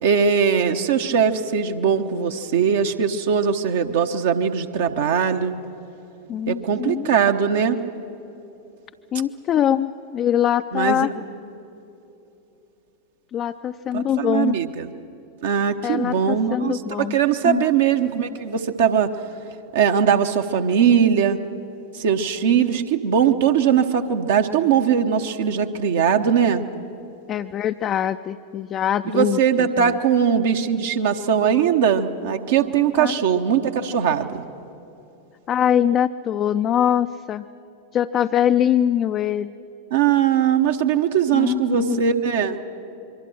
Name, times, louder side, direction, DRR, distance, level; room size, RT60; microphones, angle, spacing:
voice 1, 0.0-5.5 6.5-7.8 10.7-11.1 13.9-14.9 15.4-19.1 19.7-21.4 21.9-26.7 29.1-34.4 39.9-42.6, right 7 dB, 55° right, 6 dB, 1.0 m, -20 dB
voice 2, 6.3-7.1 9.1-11.1 13.3-14.6 15.8-17.2 17.4-17.6 27.3-30.0 33.0-33.2 35.5-37.5 37.9-39.5 41.3-42.0, left 10 dB, 30° left, 7 dB, 0.5 m, -23 dB
26.0 x 23.5 x 6.2 m, 3.0 s
figure-of-eight pair, 90°, 0 cm